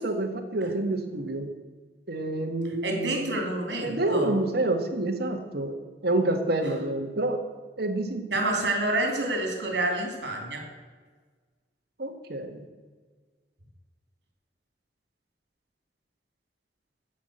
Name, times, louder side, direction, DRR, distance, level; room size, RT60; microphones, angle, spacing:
voice 1, 0.0-1.5 2.1-3.2 3.8-5.8 6.0-7.4 7.8-8.3 12.0-12.6, right 2 dB, 60° right, 3 dB, 1.8 m, -28 dB
voice 2, 2.8-4.4 6.6-6.7 8.3-10.6, right 1 dB, 80° right, 3 dB, 3.2 m, -28 dB
14.5 x 5.9 x 7.9 m, 1.4 s
head